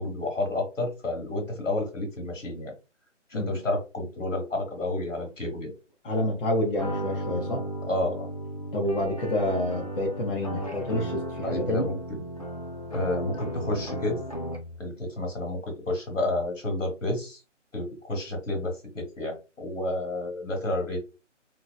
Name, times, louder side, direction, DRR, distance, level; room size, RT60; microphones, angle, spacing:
voice 1, 0.0-2.7 3.3-5.7 7.9-8.3 11.4-12.2 12.9-14.2 14.8-17.4 17.7-21.0, left 2 dB, 90° left, 1.6 m, -30 dB
voice 2, 6.0-7.7 8.7-11.9, left 1 dB, 50° left, 1.0 m, -28 dB
sound 1, 6.8-14.8, right 1 dB, 30° left, 0.4 m, -35 dB
3.0 x 2.8 x 2.3 m
figure-of-eight pair, 150°, 37 cm